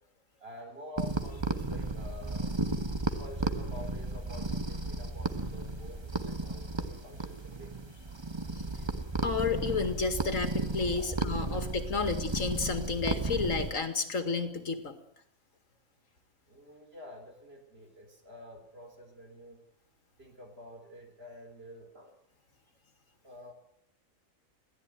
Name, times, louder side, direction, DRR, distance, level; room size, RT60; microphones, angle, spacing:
voice 1, 0.4-2.5 3.1-7.8 10.9-11.2 11.5-11.7 16.5-19.6 20.2-22.1 23.2-23.5, left 1 dB, 45° right, 4 dB, 4.3 m, -48 dB
sound 1, 1.0-13.7, right 2 dB, 20° right, 1.3 m, -34 dB
sound 2, 1.9-11.5, right 1 dB, 80° right, 4.8 m, -55 dB
voice 2, 9.2-14.9, left 4 dB, 70° left, 9 dB, 2.4 m, -31 dB
22.0 x 15.5 x 9.2 m, 0.71 s
omnidirectional pair, 1.4 m